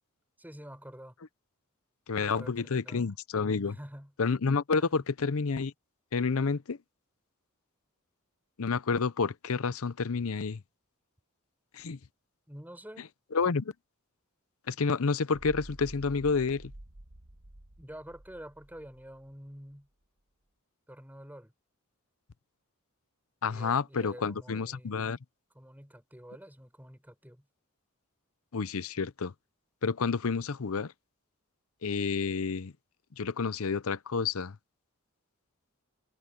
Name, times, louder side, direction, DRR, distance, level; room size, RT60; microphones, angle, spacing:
voice 1, 0.4-1.2 2.2-3.2 3.7-4.1 4.8-5.0 12.5-13.1 17.8-19.9 20.9-21.5 23.5-25.2 25.5-27.5, equal, 10° right, 4.6 m, -48 dB
voice 2, 2.1-3.8 4.2-5.7 6.1-6.8 8.6-10.6 11.7-12.0 13.3-13.7 14.7-16.7 23.4-25.2 28.5-29.3 29.8-30.9 31.8-32.7 33.2-34.6, left 5 dB, 70° left, 0.7 m, -29 dB
sound 1, 15.3-19.5, right 1 dB, 50° right, 1.4 m, -50 dB
head